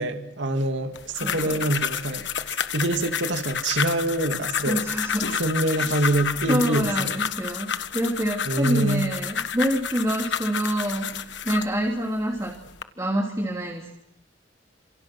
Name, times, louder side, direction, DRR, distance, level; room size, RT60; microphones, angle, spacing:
voice 1, 0.0-2.3 2.7-4.8 5.4-7.2 8.5-9.1, right 1 dB, 70° right, 2.7 m, -25 dB
sound 1, 0.9-11.7 12.4-12.8, left 7 dB, 65° left, 1.3 m, -30 dB
voice 2, 1.2-1.6 4.6-5.3 5.7-5.9 6.5-12.6 13.0-14.0, right 1 dB, 15° right, 3.1 m, -27 dB
29.5 x 27.5 x 6.3 m
head